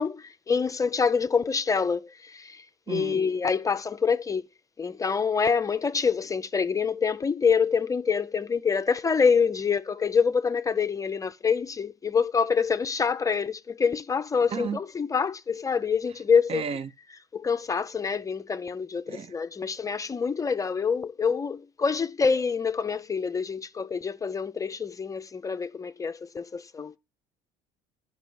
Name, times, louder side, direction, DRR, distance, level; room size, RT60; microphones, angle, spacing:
voice 1, 0.0-4.4 4.8-16.6 17.3-26.9, left 5 dB, 20° left, 0.6 m, -26 dB
voice 2, 2.9-3.2 14.5-14.8 16.5-16.9 19.1-19.3, right 7 dB, 40° right, 0.7 m, -33 dB
10.5 x 5.3 x 6.2 m
cardioid pair, 120°, 16 cm